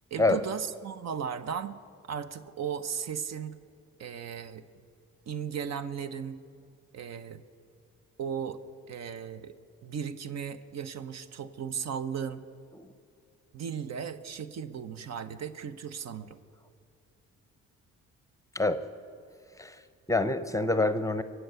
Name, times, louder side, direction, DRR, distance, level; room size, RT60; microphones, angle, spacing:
voice 1, 0.1-3.6 4.0-4.6 5.3-6.4 6.9-7.4 8.2-8.6 8.9-9.5 9.8-12.4 13.5-16.4, right 7 dB, 60° right, 12 dB, 0.9 m, -36 dB
voice 2, 20.1-21.2, left 2 dB, 10° left, 11 dB, 0.7 m, -26 dB
23.5 x 8.0 x 6.9 m, 2.4 s
cardioid pair, 90°, 30 cm